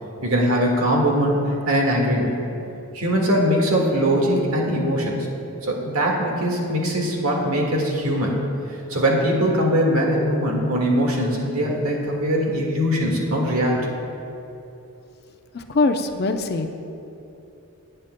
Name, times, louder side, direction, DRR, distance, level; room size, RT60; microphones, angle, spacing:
voice 1, 0.2-2.4 2.9-5.3 5.6-8.4 8.9-13.8, equal, 70° right, -1 dB, 1.8 m, -21 dB
voice 2, 15.5-16.8, left 3 dB, 45° left, 6 dB, 0.6 m, -22 dB
19.0 x 8.7 x 2.2 m, 2.8 s
head